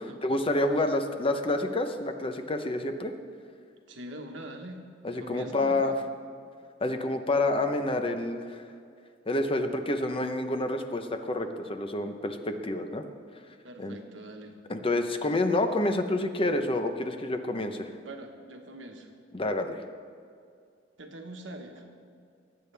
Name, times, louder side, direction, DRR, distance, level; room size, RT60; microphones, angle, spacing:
voice 1, 0.0-3.1 5.0-5.9 6.8-8.6 9.3-13.0 13.8-14.0 14.7-17.9 19.3-19.8, left 2 dB, 30° left, 7 dB, 0.8 m, -28 dB
voice 2, 3.9-4.8 5.2-5.9 13.6-14.6 18.0-19.1 21.0-21.9, right 1 dB, 85° right, 3 dB, 1.4 m, -43 dB
19.5 x 8.4 x 3.4 m, 2.3 s
head